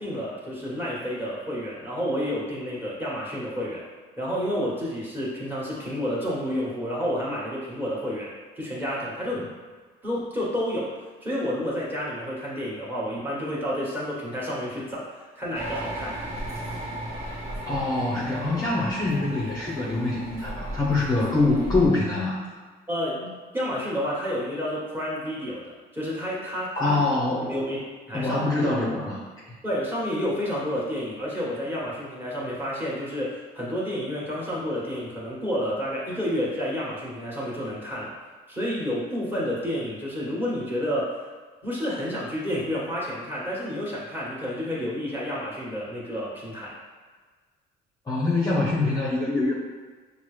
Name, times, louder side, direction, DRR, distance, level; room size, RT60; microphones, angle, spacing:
voice 1, 0.0-3.8 4.2-9.5 10.0-10.9 11.2-16.2 22.9-27.0 27.5-27.8 28.1-28.8 29.6-38.1 38.5-41.2 41.6-46.7, equal, 10° right, -7 dB, 1.4 m, -30 dB
sound 1, 15.5-21.9, right 1 dB, 35° right, 0.9 m, -35 dB
voice 2, 17.7-22.6 26.8-27.6 28.1-29.6 48.0-49.5, left 2 dB, 20° left, -5 dB, 0.7 m, -25 dB
5.8 x 2.0 x 3.2 m, 1.5 s
cardioid pair, 110°, 17 cm